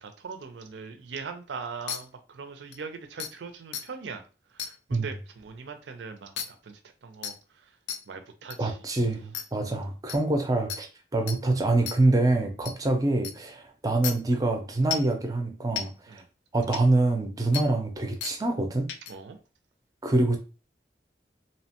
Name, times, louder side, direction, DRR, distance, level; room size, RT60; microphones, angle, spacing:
voice 1, 0.0-4.2 4.5-7.3 8.1-8.8 9.6-9.8 16.1-16.2 19.1-19.4, right 5 dB, 85° right, 0.4 m, -41 dB
sound 1, 1.9-2.0 2.7-2.8 3.2-3.3 3.7-3.8 4.6-4.7 6.4-6.5 7.2-7.3 7.9-8.0 8.5-8.6 9.3-9.4 10.1-10.2 10.7-10.8 11.3-11.4 11.9-12.0 12.6-12.7 13.2-13.3 14.0-14.1 14.9-15.1 15.8-15.9 16.7-16.8 17.5-17.6 18.2-18.3 18.9-19.1, left 8 dB, 80° left, 0.4 m, -32 dB
voice 2, 8.6-10.9 11.1-16.2 16.5-18.9 20.0-20.4, right 2 dB, 20° right, 0.4 m, -25 dB
2.8 x 2.1 x 2.8 m
head